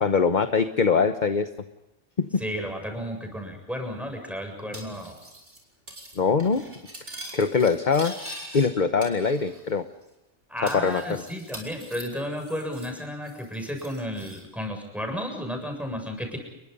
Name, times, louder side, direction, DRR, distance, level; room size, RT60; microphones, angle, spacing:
voice 1, 0.0-1.5 2.2-2.4 6.2-6.6 7.3-8.1 8.5-9.8 10.6-11.2, left 5 dB, 40° left, 9 dB, 1.1 m, -22 dB
voice 2, 2.4-5.2 10.5-16.4, equal, ahead, 3 dB, 7.4 m, -33 dB
Cutlery silverware, 4.7-5.6 5.9-6.2 6.4-8.7 9.0-9.7 10.0-10.1 10.7-13.0 13.2-14.4, right 1 dB, 65° right, 6.3 m, -43 dB
30.0 x 22.5 x 5.5 m, 0.96 s
omnidirectional pair, 1.2 m